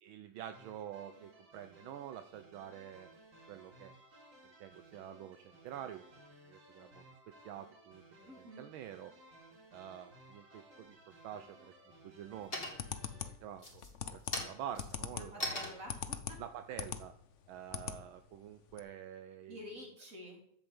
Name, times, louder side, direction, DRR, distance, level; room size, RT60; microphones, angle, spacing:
voice 1, 0.0-3.1 3.5-3.9 4.6-6.0 6.5-7.0 7.4-8.0 8.4-9.1 9.7-11.0 11.2-11.7 12.0-12.7 13.1-13.8 14.1-15.6 16.4-17.1 17.5-19.6, right 10 dB, 80° right, 9 dB, 1.5 m, -47 dB
sound 1, 0.5-13.3, right 1 dB, 65° right, 4.7 m, -59 dB
voice 2, 8.3-8.6 15.2-16.4 17.8-17.9 19.5-20.5, equal, 40° right, -1 dB, 4.4 m, -50 dB
sound 2, 10.8-11.4 11.9-12.3 12.5-13.1 13.5-17.9, left 1 dB, 25° left, 3.1 m, -42 dB
sound 3, 12.4-17.1 17.4-18.0 18.3-18.4 18.7-18.8, left 8 dB, 50° left, 0.9 m, -41 dB
11.5 x 8.1 x 8.0 m, 0.67 s
omnidirectional pair, 2.2 m